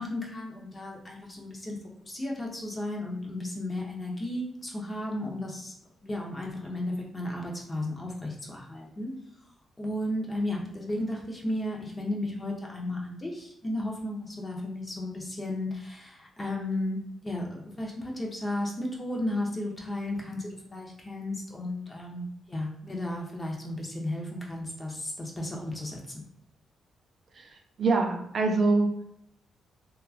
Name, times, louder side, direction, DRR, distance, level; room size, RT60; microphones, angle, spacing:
voice 1, 0.0-5.7 6.0-9.1 9.8-26.0, left 1 dB, 20° left, -1 dB, 0.6 m, -34 dB
voice 2, 27.3-29.0, right 3 dB, 45° right, 3 dB, 0.4 m, -25 dB
2.9 x 2.2 x 2.3 m, 0.73 s
cardioid pair, 135°, 0 cm